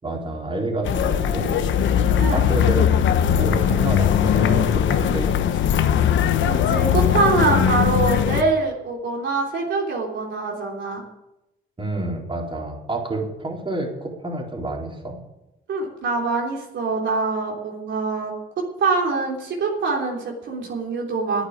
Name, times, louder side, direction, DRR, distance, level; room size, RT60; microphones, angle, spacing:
voice 1, 0.0-5.7 11.8-15.2, right 2 dB, 25° right, -1 dB, 4.0 m, -29 dB
sound 1, 0.8-8.4, left 9 dB, 70° left, 1.0 m, -19 dB
voice 2, 6.5-11.0 15.7-18.3 18.8-21.4, right 3 dB, 70° right, -2 dB, 3.5 m, -24 dB
11.5 x 8.9 x 9.6 m, 0.91 s
cardioid pair, 90°, 20 cm